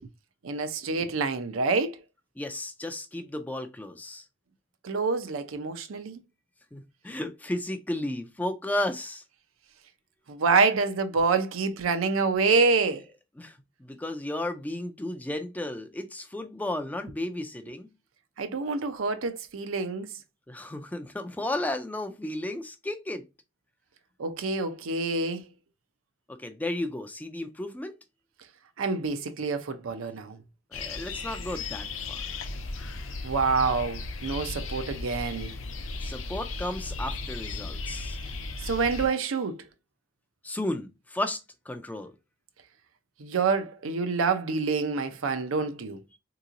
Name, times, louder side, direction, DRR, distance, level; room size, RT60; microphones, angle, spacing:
voice 1, 0.4-2.0 4.8-6.2 10.3-13.0 18.4-20.1 24.2-25.4 28.8-30.4 33.2-35.5 38.6-39.6 43.2-46.0, right 4 dB, 90° right, 0.6 m, -27 dB
voice 2, 2.4-4.3 6.7-9.2 13.4-17.9 20.5-23.2 26.3-28.0 30.7-32.2 36.0-38.2 40.4-41.4 41.7-42.1, left 1 dB, 10° left, 0.3 m, -34 dB
sound 1, 30.7-39.1, left 3 dB, 80° left, 0.6 m, -36 dB
3.7 x 2.9 x 2.4 m
head